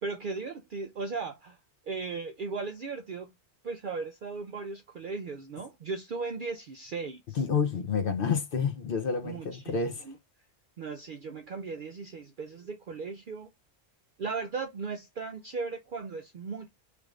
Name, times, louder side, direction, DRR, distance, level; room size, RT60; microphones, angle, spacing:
voice 1, 0.0-1.6 1.8-3.3 3.6-7.4 9.2-9.7 10.1-10.2 10.8-13.5 14.2-16.7, right 4 dB, 65° right, 0.5 m, -37 dB
voice 2, 7.4-10.1, left 6 dB, 55° left, 0.7 m, -29 dB
3.3 x 2.4 x 3.1 m
omnidirectional pair, 1.3 m